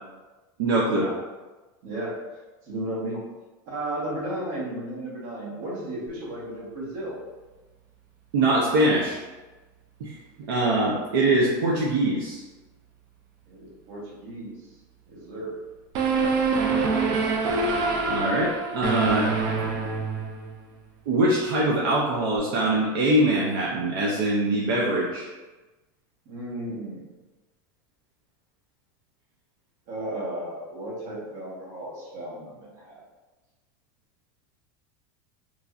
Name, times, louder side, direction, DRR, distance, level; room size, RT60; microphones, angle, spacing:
voice 1, 0.6-1.1 8.3-9.2 10.0-10.1 10.5-12.4 18.1-19.3 21.1-25.3, right 1 dB, 85° right, -4 dB, 0.6 m, -23 dB
voice 2, 1.8-2.2 2.7-3.2 3.7-7.2 13.5-14.5 15.1-15.6 26.3-27.1 29.9-33.0, right 1 dB, 60° right, -5 dB, 1.1 m, -34 dB
sound 1, 15.9-20.6, right 4 dB, 40° right, 0.4 m, -25 dB
3.1 x 2.5 x 2.3 m, 1.2 s
supercardioid pair, 165°, 11 cm